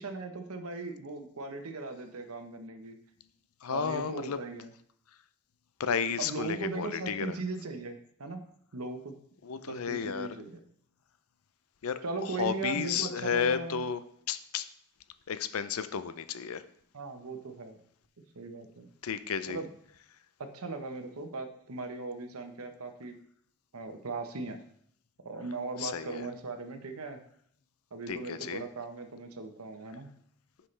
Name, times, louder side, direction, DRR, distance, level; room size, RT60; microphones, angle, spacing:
voice 1, 0.0-3.0 3.7-4.7 6.2-8.4 8.7-9.2 9.7-10.6 12.0-13.8 16.9-17.8 18.3-18.9 19.5-19.7 20.4-23.1 23.7-24.6 25.2-27.2 27.9-30.1, right 3 dB, 85° right, 6 dB, 1.0 m, -38 dB
voice 2, 3.6-4.4 5.8-7.4 9.4-10.3 11.8-12.0 12.4-14.0 14.3-14.7 15.3-16.6 19.0-19.6 25.8-26.3 28.1-28.6, left 7 dB, 80° left, 13 dB, 0.5 m, -32 dB
9.8 x 5.6 x 3.3 m, 0.65 s
head